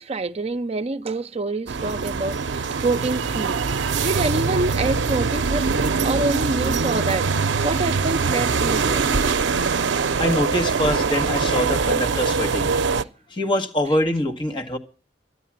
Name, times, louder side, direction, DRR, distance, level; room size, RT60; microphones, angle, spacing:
voice 1, 0.0-7.3 7.6-9.1, right 2 dB, 35° right, 0.6 m, -27 dB
sound 1, 1.7-13.0, right 5 dB, 85° right, 0.6 m, -23 dB
voice 2, 10.2-12.7 13.3-14.8, left 1 dB, 30° left, 1.7 m, -24 dB
13.0 x 10.0 x 7.4 m
head